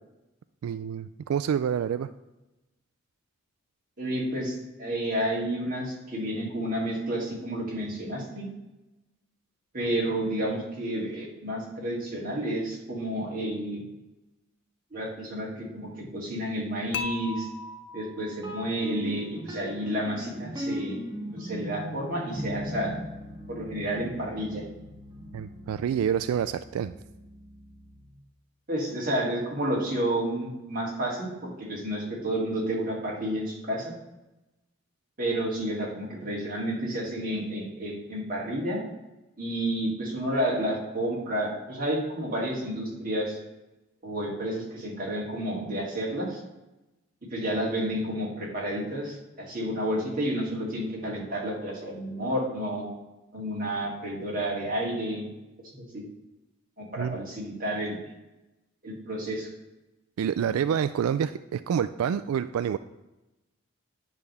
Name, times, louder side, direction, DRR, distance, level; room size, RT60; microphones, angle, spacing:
voice 1, 0.6-2.1 25.3-26.9 57.0-57.2 60.2-62.8, right 8 dB, 90° right, 13 dB, 0.3 m, -27 dB
voice 2, 4.0-8.5 9.7-13.8 14.9-17.5 17.9-21.0 21.3-22.9 23.5-24.6 28.7-33.9 35.2-38.8 39.4-43.4 44.0-46.4 47.3-52.9 53.3-55.3 55.7-56.0 56.8-58.0 58.8-59.5, right 1 dB, 40° right, -3 dB, 2.5 m, -30 dB
Dishes pots and pans / Chink clink, 16.9-19.1, left 3 dB, 55° left, 0.6 m, -38 dB
sound 1, 18.4-28.2, equal, 20° right, 1.5 m, -39 dB
9.8 x 3.5 x 6.8 m, 0.99 s
head